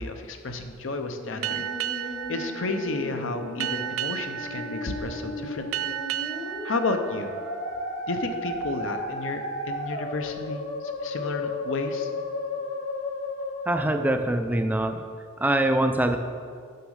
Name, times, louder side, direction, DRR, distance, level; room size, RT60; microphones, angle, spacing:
voice 1, 0.0-1.6 2.3-5.9 6.6-7.3 8.1-12.1, left 3 dB, 60° left, 6 dB, 0.7 m, -31 dB
Musical instrument, 1.1-14.1, left 2 dB, 35° left, 1.1 m, -34 dB
Boat Water vehicle, 1.4-8.5, right 10 dB, 75° right, 0.3 m, -34 dB
voice 2, 13.7-15.0 15.4-16.2, right 1 dB, 10° right, 6 dB, 0.4 m, -23 dB
6.7 x 6.2 x 6.4 m, 2.2 s
head